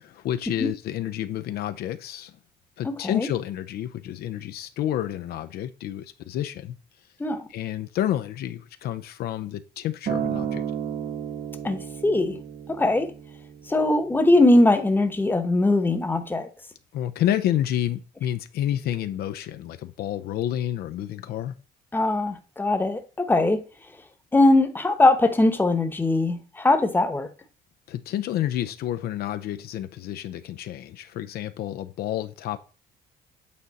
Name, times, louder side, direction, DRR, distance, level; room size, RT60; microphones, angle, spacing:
voice 1, 0.0-2.3 2.8-6.7 7.5-10.6 16.9-21.5 27.9-32.6, left 12 dB, 70° left, 0.5 m, -29 dB
voice 2, 2.8-3.3 7.2-7.5 11.6-12.4 12.8-13.1 13.7-16.5 21.9-23.6 24.3-27.3, left 2 dB, 10° left, 1.0 m, -21 dB
Acoustic guitar, 10.1-14.3 15.2-15.3, right 9 dB, 50° right, 1.0 m, -32 dB
8.6 x 3.9 x 4.1 m
cardioid pair, 110°, 17 cm